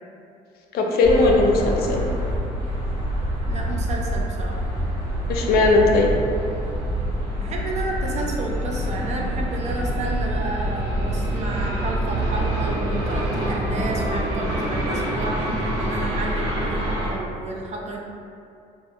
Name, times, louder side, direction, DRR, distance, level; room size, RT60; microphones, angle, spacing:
voice 1, 0.7-2.1 5.3-6.1, left 3 dB, 65° left, 0 dB, 0.4 m, -18 dB
sound 1, 1.0-17.1, right 1 dB, 80° right, 1.0 m, -26 dB
voice 2, 3.5-4.6 7.4-18.0, right 2 dB, 40° right, 0 dB, 0.4 m, -31 dB
2.4 x 2.3 x 2.7 m, 2.5 s
cardioid pair, 110°, 17 cm